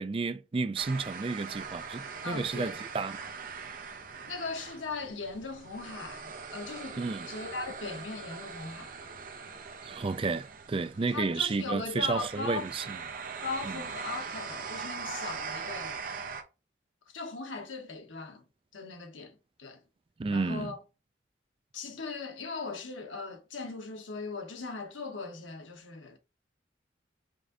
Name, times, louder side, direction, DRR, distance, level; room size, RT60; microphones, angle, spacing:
voice 1, 0.0-3.1 7.0-7.3 9.8-12.8 13.7-13.8 20.2-20.7, right 4 dB, 30° right, 0.3 m, -31 dB
sound 1, 0.8-16.4, right 5 dB, 45° right, 0.7 m, -41 dB
voice 2, 2.2-2.8 4.3-7.0 7.3-8.9 11.1-12.7 13.4-16.1 17.1-18.4 18.7-19.8 20.3-20.8 21.7-26.2, left 3 dB, 90° left, 1.1 m, -39 dB
5.2 x 2.6 x 3.7 m
head